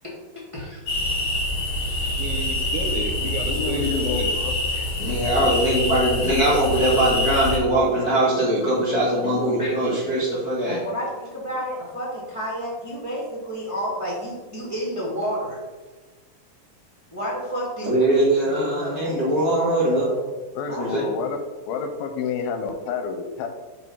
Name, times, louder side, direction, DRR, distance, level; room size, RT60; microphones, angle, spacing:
sound 1, 0.9-7.6, left 2 dB, 60° left, 2.7 m, -25 dB
voice 1, 2.2-4.3 7.6-8.8 9.2-10.0, right 4 dB, 80° right, 7 dB, 2.3 m, -32 dB
voice 2, 3.5-4.5 5.3-5.5 20.5-21.4 21.7-23.5, left 6 dB, 80° left, 6 dB, 2.6 m, -29 dB
voice 3, 5.0-10.8 17.8-20.1 20.8-21.0, right 1 dB, 45° left, -8 dB, 1.2 m, -21 dB
voice 4, 10.6-15.6 17.1-17.9 18.4-20.3 20.7-20.9, equal, 15° right, -6 dB, 1.2 m, -31 dB
6.0 x 4.9 x 5.5 m, 1.3 s
omnidirectional pair, 4.2 m